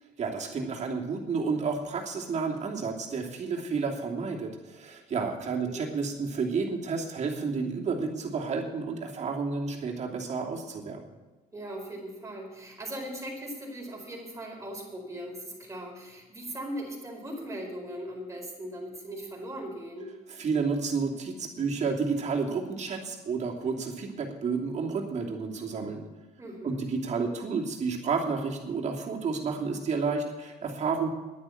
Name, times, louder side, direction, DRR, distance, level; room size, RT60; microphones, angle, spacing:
voice 1, 0.2-11.0 20.3-26.1 26.6-31.1, right 4 dB, 45° right, 0 dB, 2.9 m, -31 dB
voice 2, 11.5-20.1 26.4-26.8, right 1 dB, 20° right, 0 dB, 4.6 m, -39 dB
11.0 x 9.8 x 7.9 m, 1.2 s
cardioid pair, 110°, 17 cm